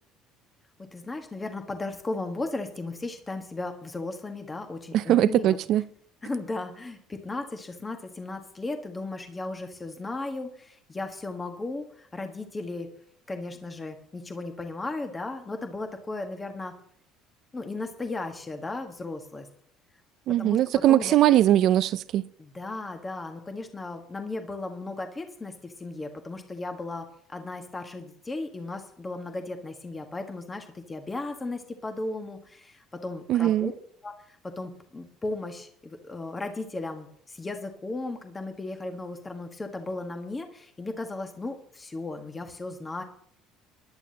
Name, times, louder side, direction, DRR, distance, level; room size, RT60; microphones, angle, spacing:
voice 1, 0.9-5.6 6.2-12.9 13.3-16.8 17.5-19.5 20.4-20.6 20.9-21.2 22.4-33.7 34.0-43.0, left 2 dB, 20° left, 1.6 m, -36 dB
voice 2, 4.9-5.8 20.3-22.2 33.3-33.7, right 13 dB, 60° right, 0.5 m, -21 dB
19.5 x 11.5 x 2.9 m
supercardioid pair, 80°, 0 cm